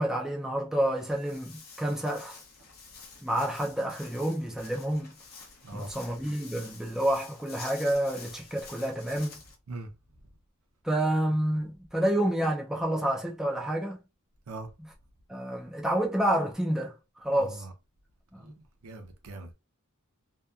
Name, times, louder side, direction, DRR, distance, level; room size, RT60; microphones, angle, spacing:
voice 1, 0.0-2.4 3.2-5.2 5.7-9.4 10.8-14.0 14.8-14.9 15.3-17.6 18.3-18.6, right 1 dB, ahead, 0.4 m, -29 dB
Walk footsteps, 0.8-9.5, left 4 dB, 45° left, 0.8 m, -49 dB
voice 2, 17.4-17.7 18.4-18.5 18.8-19.5, right 2 dB, 75° right, 0.7 m, -41 dB
2.7 x 2.2 x 2.3 m
head